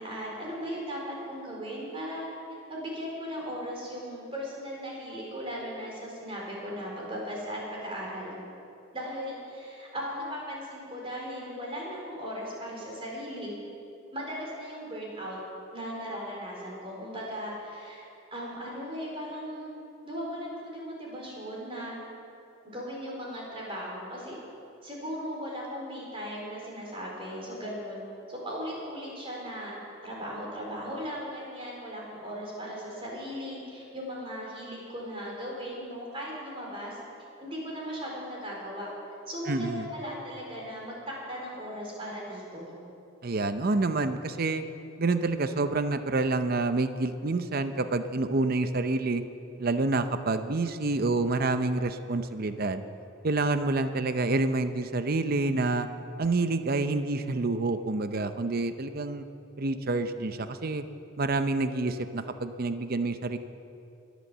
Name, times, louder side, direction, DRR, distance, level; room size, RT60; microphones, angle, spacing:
voice 1, 0.0-2.3 2.7-8.3 8.9-13.5 14.1-15.4 15.7-18.0 18.3-19.7 20.0-22.0 22.6-24.4 24.8-28.0 28.3-29.8 30.0-37.0 37.4-38.9 39.3-42.7, equal, 25° right, -3 dB, 4.3 m, -37 dB
voice 2, 39.5-39.9 43.2-44.6 45.0-49.2 49.6-52.8 53.2-55.9 56.2-59.2 59.6-60.8 61.2-63.4, right 3 dB, 45° right, 10 dB, 0.6 m, -28 dB
22.0 x 8.4 x 7.3 m, 2.7 s
head